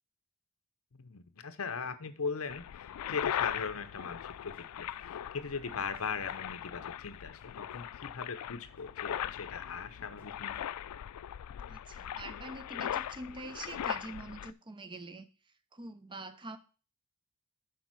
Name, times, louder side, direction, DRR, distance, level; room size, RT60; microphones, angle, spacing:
voice 1, 0.9-10.6, left 5 dB, 65° left, 9 dB, 0.8 m, -39 dB
sound 1, 2.5-14.5, left 10 dB, 90° left, 0.3 m, -39 dB
sound 2, 3.3-10.7, equal, 85° right, 3.5 m, -65 dB
voice 2, 11.7-15.3 15.7-16.6, right 2 dB, 20° right, 10 dB, 0.6 m, -44 dB
7.0 x 4.5 x 6.1 m, 0.36 s
head